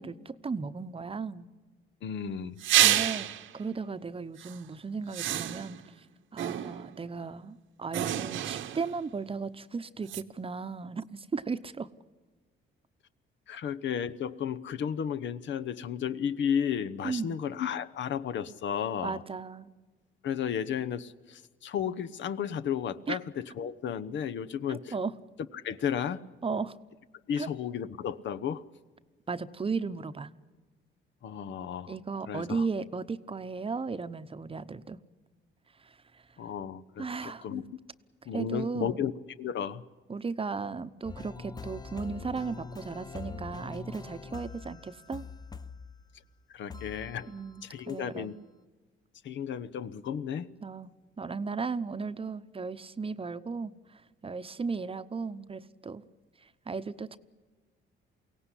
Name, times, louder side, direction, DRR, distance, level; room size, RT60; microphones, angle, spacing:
voice 1, 0.0-1.5 2.8-5.8 6.3-11.9 17.0-17.4 19.0-19.7 23.1-23.2 24.7-25.1 26.4-26.8 27.4-27.5 29.3-30.3 31.9-35.0 35.8-36.2 37.0-37.5 38.3-39.1 40.1-45.2 47.3-48.3 50.6-50.9 51.2-56.0 56.4-57.2, right 4 dB, 30° right, 12 dB, 0.9 m, -36 dB
voice 2, 2.0-2.6 13.5-19.2 20.2-24.9 25.5-26.2 27.3-28.6 31.2-31.9 32.3-32.7 36.4-37.6 38.3-39.1 39.4-39.8 46.5-47.3 47.6-48.4 49.2-50.5, left 8 dB, 65° left, 12 dB, 0.9 m, -33 dB
sound 1, 2.6-3.5 4.4-4.6 5.1-5.8 6.4-7.0 7.9-9.0 10.1-10.2, right 12 dB, 80° right, 1.1 m, -28 dB
sound 2, 41.0-46.2 46.7-47.6 47.9-48.0, left 4 dB, 20° left, 0.8 m, -43 dB
23.0 x 17.5 x 9.9 m, 1.3 s
cardioid pair, 90°, 20 cm